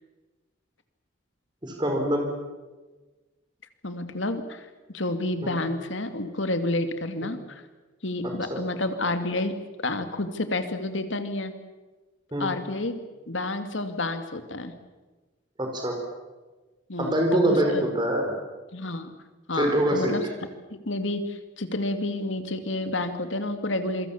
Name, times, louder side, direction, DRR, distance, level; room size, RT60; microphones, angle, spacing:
voice 1, 1.6-2.3 5.4-5.5 8.5-8.6 12.3-12.5 15.6-16.0 17.0-18.4 19.6-20.1, right 1 dB, 25° right, 2 dB, 4.7 m, -24 dB
voice 2, 3.8-7.6 8.0-9.5 9.8-11.5 12.4-13.0 13.3-14.7 16.9-17.8 18.7-19.1 19.5-20.2 20.7-24.1, left 2 dB, 75° left, 9 dB, 2.3 m, -29 dB
27.5 x 23.5 x 7.3 m, 1.2 s
head